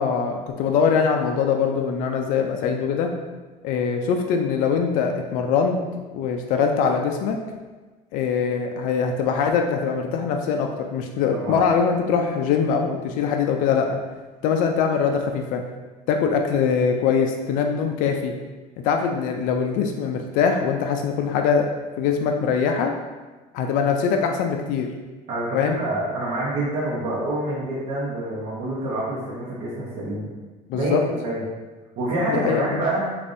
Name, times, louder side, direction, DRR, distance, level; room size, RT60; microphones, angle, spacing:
voice 1, 0.0-3.1 3.6-5.8 6.1-7.4 8.1-14.0 14.4-15.6 16.1-18.3 18.8-21.7 22.0-22.9 23.5-24.9 25.5-25.8 30.7-31.0 32.3-32.8, left 6 dB, 65° left, 4 dB, 0.4 m, -22 dB
voice 2, 25.3-30.3 30.7-31.4 32.0-33.1, right 1 dB, 50° right, -8 dB, 0.9 m, -27 dB
4.9 x 2.6 x 2.6 m, 1.3 s
cardioid pair, 155°, 15 cm